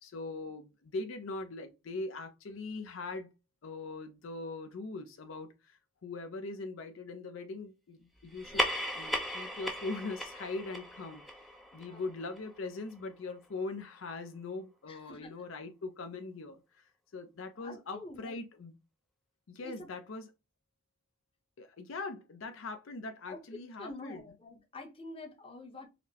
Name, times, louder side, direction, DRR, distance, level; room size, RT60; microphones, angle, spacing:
voice 1, 0.0-3.3 3.6-8.7 8.9-18.8 19.5-20.3 21.6-24.2, left 3 dB, 70° left, 0.5 m, -41 dB
sound 1, 8.3-13.2, equal, ahead, 0.4 m, -37 dB
voice 2, 11.7-12.1 14.9-15.5 17.5-18.4 19.6-19.9 23.3-25.9, left 2 dB, 25° left, 0.8 m, -47 dB
4.1 x 2.1 x 2.7 m
head